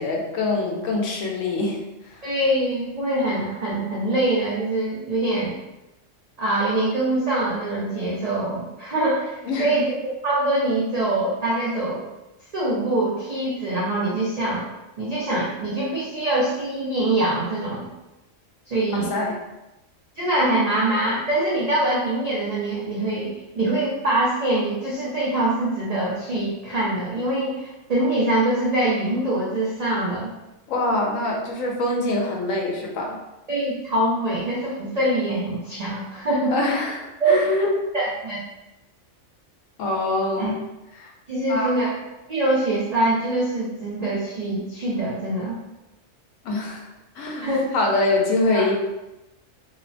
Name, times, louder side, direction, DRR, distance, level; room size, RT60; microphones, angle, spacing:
voice 1, 0.0-1.8 2.0-2.2 9.5-9.7 18.9-19.4 30.7-33.2 36.5-37.7 39.8-40.6 40.9-41.1 41.5-41.7 46.4-46.8 47.2-47.5 47.7-48.7, left 2 dB, 80° left, 0 dB, 1.0 m, -24 dB
voice 2, 2.2-5.6 6.4-12.0 12.5-14.6 15.0-17.9 18.7-19.1 20.2-30.3 33.5-36.5 37.2-37.4 37.9-38.4 40.4-40.5 41.3-41.9 42.3-45.6 47.4-47.7 48.5-48.6, right 1 dB, 70° right, -6 dB, 0.3 m, -24 dB
2.8 x 2.0 x 2.5 m, 0.98 s
omnidirectional pair, 1.4 m